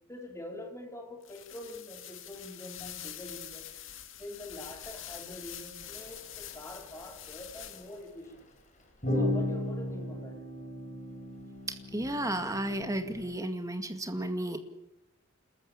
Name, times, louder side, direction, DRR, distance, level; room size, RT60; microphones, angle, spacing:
voice 1, 0.1-3.7 4.2-8.5 9.1-10.4, left 1 dB, 15° left, 2 dB, 3.6 m, -45 dB
sound 1, 1.2-8.1, left 11 dB, 70° left, 2.0 m, -45 dB
sound 2, 5.9-6.0 6.3-6.5 7.3-7.7 9.0-13.3, left 1 dB, 40° left, 4.5 m, -35 dB
voice 2, 11.9-14.6, right 1 dB, 15° right, 7 dB, 2.1 m, -33 dB
29.0 x 14.0 x 8.6 m, 0.89 s
head